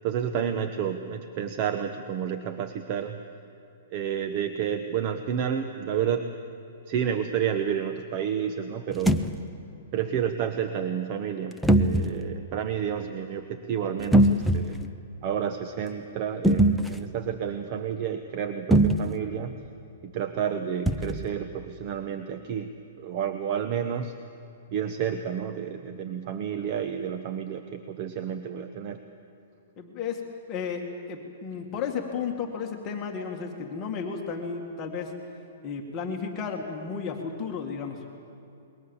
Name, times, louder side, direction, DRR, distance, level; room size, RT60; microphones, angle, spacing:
voice 1, 0.0-3.2 3.9-6.3 6.9-9.3 9.9-14.8 15.2-19.6 20.0-22.7 23.0-24.1 24.7-29.0, right 8 dB, 35° right, 7 dB, 1.1 m, -30 dB
sound 1, 8.9-9.3 11.6-12.2 14.0-14.9 16.4-17.0 18.7-19.2 20.9-21.3, right 1 dB, ahead, 0.7 m, -21 dB
voice 2, 29.8-30.2 30.5-35.1 35.6-38.2, left 6 dB, 25° left, 1 dB, 2.1 m, -33 dB
27.5 x 22.0 x 7.3 m, 2.7 s
hypercardioid pair, 160°, 0 cm